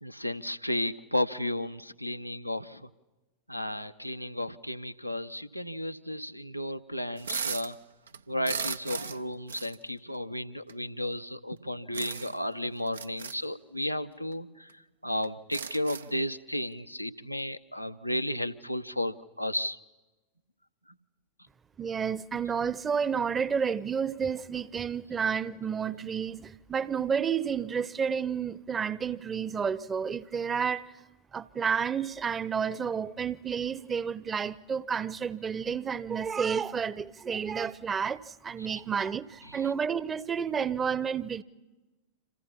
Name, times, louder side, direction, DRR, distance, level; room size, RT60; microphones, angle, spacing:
voice 1, 0.0-2.9 3.5-7.8 8.3-19.8 38.6-38.7 39.0-39.1 39.4-39.7, left 1 dB, 90° left, 0.9 m, -33 dB
sound 1, 7.2-7.7 8.1-9.2 9.5-9.8 10.7-10.8 11.9-12.4 12.9-13.4 14.3-14.4 14.7-14.8 15.2-16.2, right 6 dB, 70° right, 0.7 m, -36 dB
voice 2, 21.8-30.8 31.3-41.4, right 7 dB, 20° right, 0.9 m, -30 dB
29.5 x 27.5 x 5.7 m
figure-of-eight pair, 90°, 0 cm